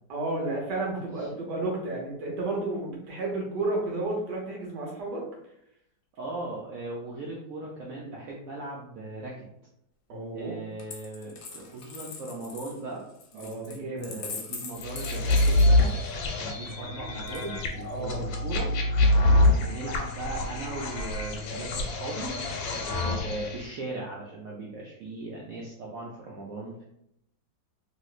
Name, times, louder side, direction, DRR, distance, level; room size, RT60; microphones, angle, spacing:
voice 1, 0.1-5.2 10.1-10.5 13.3-14.3 17.8-18.3 22.7-23.4, right 2 dB, 65° right, -2 dB, 1.4 m, -32 dB
voice 2, 1.2-1.6 6.2-9.5 10.3-13.0 13.3-15.9 16.4-18.7 19.1-22.3 22.6-22.7 23.0-26.8, right 2 dB, 85° right, -3 dB, 0.7 m, -38 dB
Coin (dropping), 10.8-16.2 17.3-18.0, left 5 dB, 70° left, 1.1 m, -42 dB
sound 1, 14.8-23.6, left 1 dB, 90° left, 1.3 m, -25 dB
3.1 x 2.9 x 2.3 m, 0.77 s
omnidirectional pair, 2.1 m